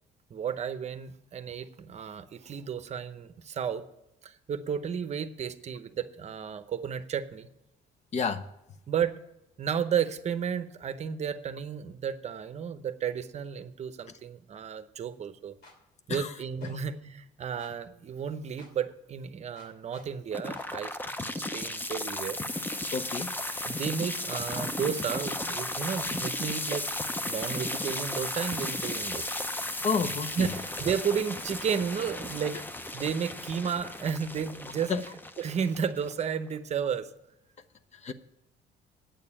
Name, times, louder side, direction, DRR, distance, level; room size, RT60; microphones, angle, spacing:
voice 1, 0.3-3.8 4.2-7.5 8.9-9.2 9.6-15.5 16.1-22.4 23.6-26.9 27.3-29.3 30.4-32.6 32.9-34.9 35.4-37.1, right 7 dB, 40° right, 11 dB, 0.8 m, -33 dB
voice 2, 8.1-8.5 16.1-16.3 22.9-23.3 29.8-30.5 34.9-35.0 38.0-38.1, left 5 dB, 40° left, 10 dB, 0.8 m, -29 dB
sound 1, 15.6-15.8 16.6-16.8 17.6-17.7 18.6-18.7 19.6-20.1 20.5-20.7 21.5-21.7 22.5-22.7 23.5-23.6 24.5-24.6 25.5-25.6 26.4-26.6 27.4-27.6 28.4-28.6 29.4-29.9 30.4-30.9 31.4-31.9 32.3-32.5, left 2 dB, 75° left, 2.9 m, -53 dB
sound 2, 20.3-36.3, left 1 dB, 10° left, 0.6 m, -35 dB
9.1 x 6.7 x 8.7 m, 0.89 s
cardioid pair, 110°, 17 cm